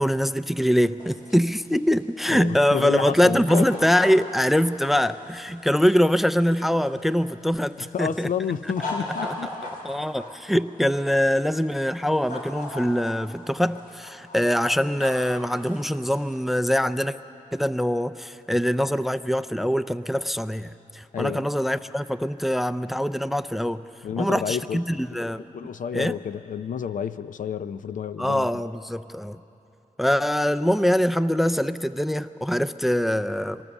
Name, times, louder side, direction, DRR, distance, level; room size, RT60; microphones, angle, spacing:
voice 1, 0.0-8.6 9.8-17.2 17.5-23.8 24.2-25.5 25.9-26.2 28.2-29.4 30.0-33.6, equal, ahead, 12 dB, 0.4 m, -23 dB
sound 1, 1.0-7.0 7.4-10.3 11.4-11.8 12.1-13.3 13.6-16.4, left 2 dB, 90° left, 4.3 m, -38 dB
voice 2, 2.3-3.7 7.8-9.5 21.1-21.5 24.0-24.8 25.5-28.5, left 8 dB, 65° left, 13 dB, 0.5 m, -30 dB
23.5 x 19.0 x 7.1 m, 3.0 s
wide cardioid pair, 105°, 14 cm